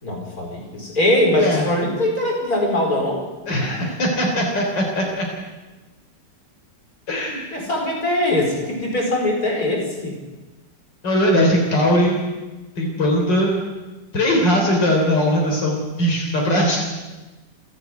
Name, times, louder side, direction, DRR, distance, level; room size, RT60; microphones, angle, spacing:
voice 1, 0.0-3.2 7.5-10.1, left 1 dB, 55° left, 0 dB, 5.2 m, -21 dB
voice 2, 1.3-1.7 3.5-5.3 7.1-7.4 11.0-12.2 12.8-13.6 14.1-16.8, equal, 80° left, -1 dB, 4.3 m, -20 dB
28.0 x 9.9 x 9.4 m, 1.2 s
omnidirectional pair, 1.9 m